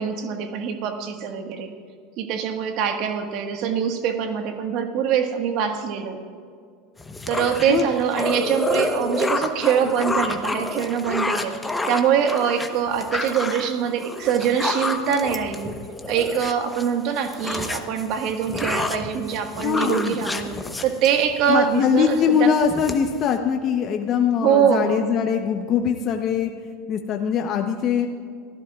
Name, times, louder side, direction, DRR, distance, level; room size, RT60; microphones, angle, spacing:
voice 1, 0.0-1.7 2.2-6.2 7.3-11.6 11.9-15.7 16.1-20.5 20.8-22.5 24.4-25.0, right 8 dB, 60° right, 5 dB, 1.6 m, -23 dB
sound 1, 7.0-16.9 17.2-21.6 22.0-22.2 22.5-23.3, left 2 dB, 10° left, 1.1 m, -29 dB
voice 2, 19.6-20.2 21.5-26.5 26.9-28.1, left 7 dB, 45° left, 4 dB, 0.9 m, -22 dB
24.0 x 14.5 x 2.5 m, 2.1 s
hypercardioid pair, 100°, 0 cm